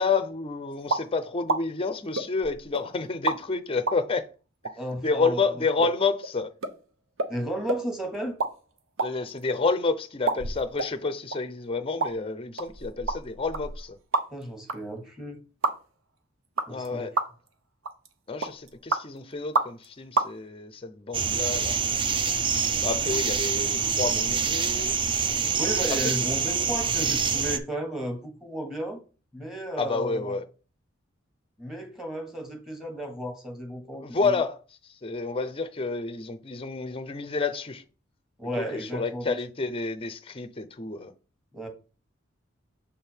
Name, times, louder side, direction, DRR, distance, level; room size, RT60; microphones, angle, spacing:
voice 1, 0.0-4.3 5.0-6.5 9.0-14.0 16.7-17.1 18.3-21.8 22.8-25.0 26.0-26.1 29.8-30.4 34.0-34.6 35.0-37.8 38.6-41.1, left 4 dB, 30° left, 0.5 m, -29 dB
sound 1, 0.9-1.1 1.5-1.6 2.1-2.8 3.3-3.4 3.9-4.0 4.6-4.7 5.2-5.3 5.8-6.0 6.2-6.3 6.6-6.7 7.2-7.3 7.7-7.8 8.2-8.5 8.8-9.7 10.3-10.9 11.3-11.4 12.0-12.1 12.6-14.4 14.7-14.8 15.6-15.7 16.6-16.9 17.2-17.5 17.8-18.1 18.4-19.0 19.5-19.9 20.1-20.3, right 3 dB, 75° right, 0.8 m, -28 dB
voice 2, 4.8-5.4 7.3-8.4 14.3-15.4 16.7-17.1 25.6-29.0 29.3-30.3 31.6-34.3 38.4-39.4 41.5-41.7, right 1 dB, ahead, 1.4 m, -34 dB
sound 2, 21.1-27.6, right 6 dB, 25° right, 0.5 m, -26 dB
6.9 x 3.5 x 4.5 m
head